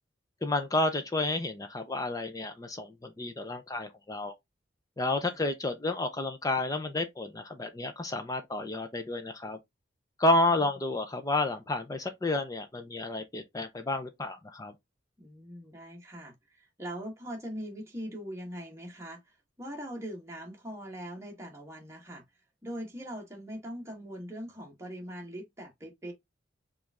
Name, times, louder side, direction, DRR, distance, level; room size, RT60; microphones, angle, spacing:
voice 1, 0.4-4.3 5.0-9.6 10.2-14.7, left 2 dB, 20° left, 0.5 m, -30 dB
voice 2, 15.2-22.2 22.6-26.1, equal, 15° right, 1.2 m, -41 dB
4.9 x 2.5 x 3.4 m
head